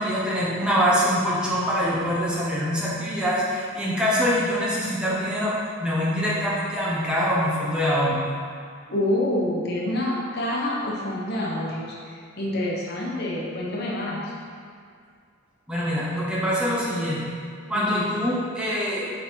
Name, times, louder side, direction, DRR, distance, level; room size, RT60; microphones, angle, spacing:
voice 1, 0.0-8.3 15.7-17.2 17.7-19.1, equal, 5° right, -7 dB, 1.0 m, -24 dB
voice 2, 8.9-14.3 17.7-18.1, left 1 dB, 55° left, -4 dB, 1.0 m, -27 dB
6.7 x 4.2 x 3.8 m, 2.2 s
head